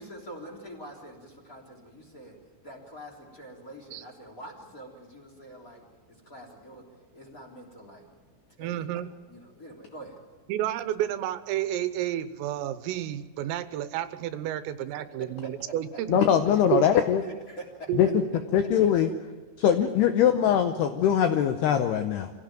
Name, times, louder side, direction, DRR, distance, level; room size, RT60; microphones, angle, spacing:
voice 1, 0.0-6.8 7.1-8.1 8.6-10.2 15.1-15.5 16.7-17.9, right 1 dB, 20° left, 0 dB, 2.9 m, -45 dB
voice 2, 8.6-9.1 10.5-16.2 16.7-16.8 17.9-18.2, right 12 dB, 90° right, 13 dB, 3.6 m, -30 dB
voice 3, 16.1-17.2 18.0-18.1 18.5-19.1 19.6-22.3, left 9 dB, 80° left, 8 dB, 2.4 m, -22 dB
25.5 x 16.5 x 9.2 m, 1.4 s
omnidirectional pair, 5.8 m